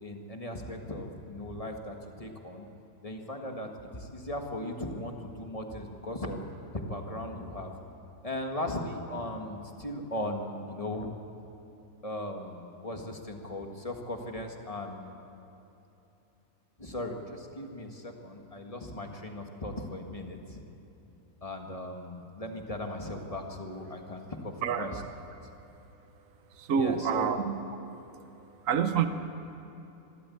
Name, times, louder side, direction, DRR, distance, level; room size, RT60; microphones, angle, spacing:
voice 1, 0.0-2.7 3.0-6.4 6.7-7.7 8.2-11.1 12.0-15.1 16.8-20.6 21.4-25.0 26.7-27.3, left 1 dB, 25° left, 3 dB, 1.8 m, -38 dB
voice 2, 26.6-27.6 28.6-29.1, right 7 dB, 65° right, 9 dB, 1.3 m, -27 dB
25.5 x 13.5 x 8.5 m, 2.9 s
omnidirectional pair, 1.6 m